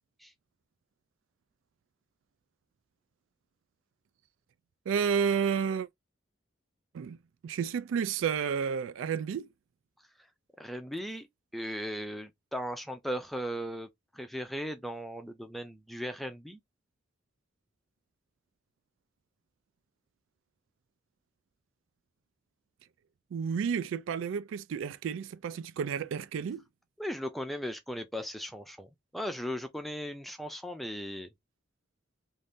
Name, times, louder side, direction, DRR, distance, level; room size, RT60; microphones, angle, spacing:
voice 1, 4.9-5.9 6.9-7.2 7.4-9.5 23.3-26.6, right 7 dB, 80° right, 0.3 m, -31 dB
voice 2, 10.6-11.3 11.5-16.6 27.0-31.3, equal, ahead, 0.4 m, -37 dB
2.6 x 2.5 x 3.4 m
head